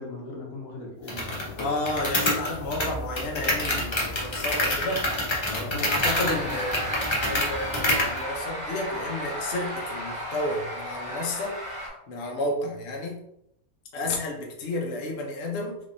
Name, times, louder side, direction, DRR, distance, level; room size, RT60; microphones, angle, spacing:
voice 1, 0.0-1.7 5.5-6.0, left 2 dB, 75° left, 0 dB, 1.3 m, -37 dB
sound 1, 1.1-8.2, left 1 dB, 35° left, 0.4 m, -27 dB
voice 2, 1.6-5.1 5.8-7.0 7.2-11.6 12.1-13.2 13.9-15.8, left 2 dB, 55° left, 0 dB, 0.9 m, -31 dB
sound 2, 5.9-11.9, equal, 35° right, 1.0 m, -34 dB
3.5 x 3.3 x 2.5 m, 0.78 s
omnidirectional pair, 1.5 m